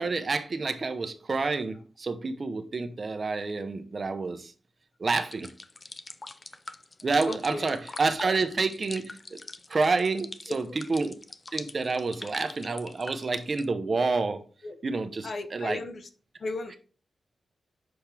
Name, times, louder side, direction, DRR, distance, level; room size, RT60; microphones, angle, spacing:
voice 1, 0.0-4.5 5.0-5.5 7.0-9.4 9.7-11.1 11.5-14.4 14.8-15.8, right 3 dB, 40° right, 0.9 m, -28 dB
sound 1, 5.2-13.7, left 3 dB, 30° left, 0.5 m, -43 dB
voice 2, 7.3-7.7 10.5-10.8 14.6-14.8 15.2-16.1 16.4-16.8, left 3 dB, 50° left, 0.8 m, -36 dB
7.8 x 5.9 x 3.4 m
wide cardioid pair, 135°, 0 cm